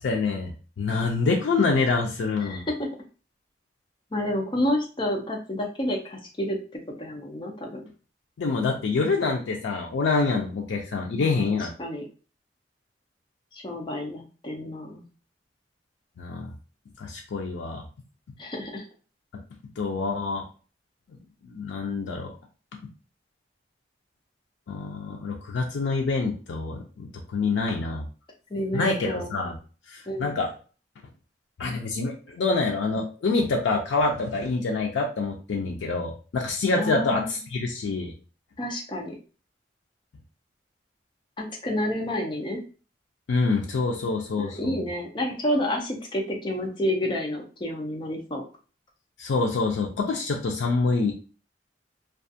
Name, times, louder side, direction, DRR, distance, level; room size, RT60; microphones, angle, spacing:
voice 1, 0.0-2.7 8.4-11.7 16.2-16.5 17.0-17.8 19.8-20.4 21.4-22.3 24.7-28.1 28.7-29.6 29.9-30.5 31.6-38.1 43.3-44.8 49.2-51.1, left 3 dB, 85° left, 1 dB, 0.4 m, -26 dB
voice 2, 2.4-2.9 4.1-7.8 11.1-11.4 11.8-12.0 13.5-15.0 18.4-18.8 28.5-29.3 30.1-30.3 36.8-37.4 38.6-39.2 41.4-42.6 44.4-48.4, left 1 dB, 25° left, 1 dB, 0.5 m, -29 dB
2.4 x 2.3 x 2.6 m, 0.36 s
head